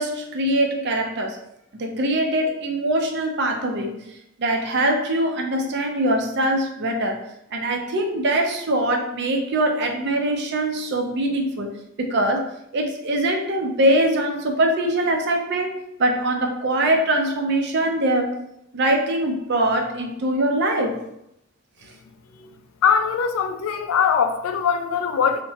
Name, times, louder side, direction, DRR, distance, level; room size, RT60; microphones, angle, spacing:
voice 1, 0.0-1.4 1.7-7.2 7.5-11.7 12.0-18.4 18.7-21.0, right 1 dB, 55° right, 3 dB, 0.5 m, -23 dB
voice 2, 22.8-25.4, left 7 dB, 80° left, 6 dB, 0.3 m, -21 dB
2.8 x 2.1 x 2.7 m, 0.76 s
head